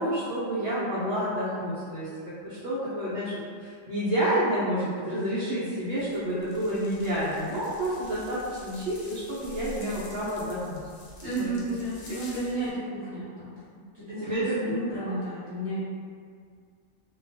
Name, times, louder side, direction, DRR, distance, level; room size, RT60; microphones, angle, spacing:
voice 1, 0.0-2.1 2.4-3.3 3.6-10.8 11.4-11.6 14.2-14.6 15.1-15.2, equal, 65° right, -10 dB, 0.8 m, -29 dB
sound 1, 5.9-12.7, left 1 dB, 80° left, 1.0 m, -47 dB
voice 2, 11.2-13.5 13.9-15.8, right 1 dB, 25° right, -14 dB, 0.6 m, -32 dB
2.3 x 2.2 x 2.6 m, 2.1 s
omnidirectional pair, 1.3 m